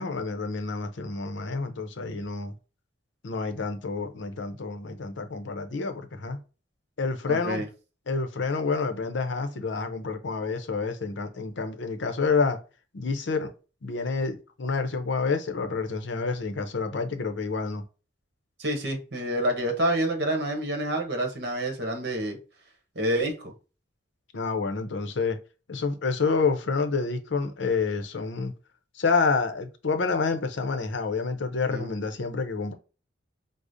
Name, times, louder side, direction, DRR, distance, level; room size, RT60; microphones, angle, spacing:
voice 1, 0.0-2.5 3.2-6.4 7.0-7.6 8.1-12.6 12.9-13.5 13.8-17.8 24.3-25.4 25.7-28.5 29.0-32.7, left 4 dB, 70° left, 0.6 m, -28 dB
voice 2, 7.3-7.7 18.6-22.4 23.0-23.5 31.7-31.9, right 1 dB, 55° right, 0.9 m, -28 dB
4.8 x 2.0 x 2.6 m
head